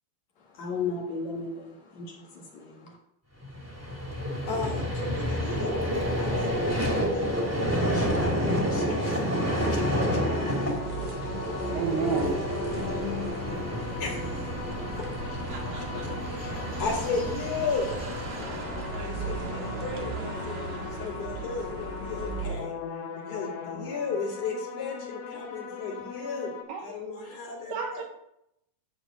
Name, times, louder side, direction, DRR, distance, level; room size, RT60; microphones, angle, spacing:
voice 1, 0.6-2.3 2.5-2.9, left 4 dB, 60° left, -1 dB, 1.9 m, -34 dB
Vehicle, 3.4-19.8, equal, 5° right, 1.9 m, -30 dB
voice 2, 4.5-10.2 10.5-10.6 11.1-11.2 14.0-15.4 15.7-15.8 16.2-17.9 19.0-28.0, left 4 dB, 40° left, -2 dB, 2.8 m, -36 dB
sound 1, 9.3-26.6, left 6 dB, 80° left, 4.0 m, -39 dB
sound 2, 10.3-22.6, right 4 dB, 60° right, 3.2 m, -37 dB
voice 3, 11.7-12.4 26.7-26.8 27.7-28.0, right 6 dB, 75° right, 1 dB, 2.5 m, -29 dB
13.5 x 4.4 x 7.8 m, 0.80 s
omnidirectional pair, 5.7 m